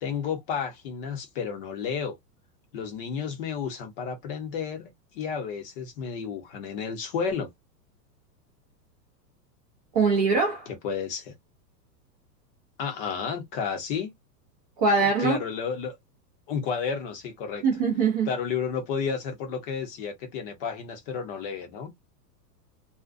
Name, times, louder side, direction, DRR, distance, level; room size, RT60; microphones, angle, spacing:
voice 1, 0.0-2.2 2.7-4.9 5.1-7.5 10.8-11.3 12.8-14.1 15.0-15.9 16.5-17.6 18.3-21.9, left 6 dB, 35° left, 0.7 m, -31 dB
voice 2, 9.9-10.7 14.8-15.4 17.6-18.3, right 4 dB, 25° right, 0.4 m, -22 dB
2.5 x 2.1 x 2.4 m
supercardioid pair, 160°, 50 cm